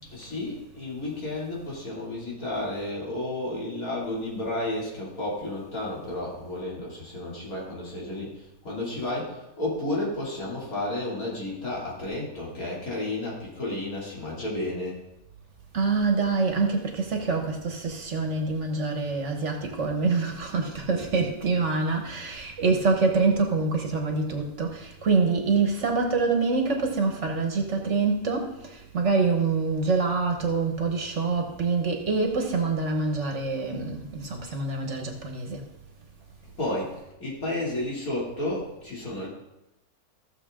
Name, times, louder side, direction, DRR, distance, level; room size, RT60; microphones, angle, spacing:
voice 1, 0.1-15.0 36.6-39.3, left 1 dB, 65° left, 3.2 m, -32 dB
voice 2, 15.7-35.6, right 4 dB, 50° right, 1.4 m, -25 dB
15.0 x 6.8 x 3.7 m
omnidirectional pair, 1.6 m